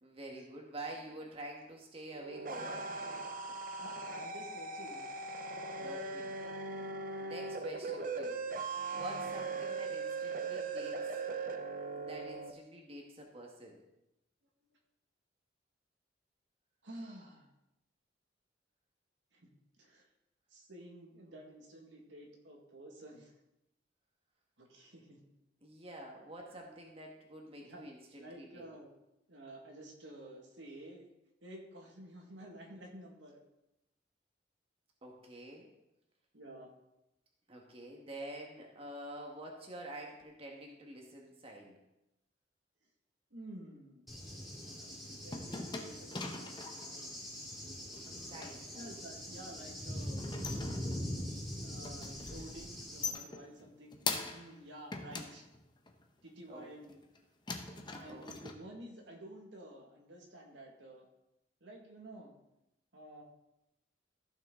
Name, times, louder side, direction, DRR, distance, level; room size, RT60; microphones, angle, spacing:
voice 1, 0.0-2.9 5.8-6.3 6.7-6.9 7.2-8.4 8.9-11.0 11.9-13.8 25.6-28.7 35.0-35.7 37.5-41.8 48.3-48.9 50.0-50.1 56.5-56.7 58.1-58.3, right 1 dB, 30° right, 0 dB, 1.5 m, -48 dB
sound 1, 2.1-12.5, right 3 dB, 45° right, 0.8 m, -39 dB
voice 2, 3.3-5.1 16.8-17.5 19.3-19.5 19.8-20.1 20.5-23.4 24.6-25.2 27.6-27.9 28.2-28.9 29.3-31.1 31.4-33.4 36.3-36.7 43.3-44.1 44.7-47.2 48.7-50.2 51.6-54.0 54.3-55.5 56.2-57.0 58.0-61.1 61.6-62.3 62.9-63.2, right 1 dB, 80° right, 0 dB, 1.9 m, -51 dB
Cricket / Thunder, 44.1-53.1, equal, ahead, 2.2 m, -43 dB
sound 2, 44.7-46.9 47.9-48.6 49.9-51.2 51.6-52.5 52.8-54.6 54.9-56.0 56.6-57.2 57.5-58.5, left 4 dB, 25° left, 0.9 m, -42 dB
14.5 x 6.4 x 3.7 m, 0.90 s
head